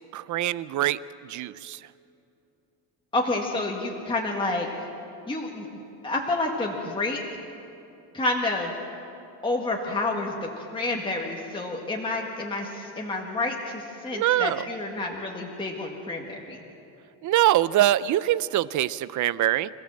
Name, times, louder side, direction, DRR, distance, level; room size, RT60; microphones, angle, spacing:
voice 1, 0.1-1.0 1.3-1.8 14.1-14.7 17.2-19.7, right 13 dB, 45° right, 17 dB, 0.5 m, -23 dB
voice 2, 3.1-4.7 5.3-7.2 8.1-8.7 9.4-16.6, left 2 dB, 10° left, -1 dB, 1.7 m, -29 dB
26.5 x 15.5 x 7.5 m, 2.8 s
cardioid pair, 155°, 43 cm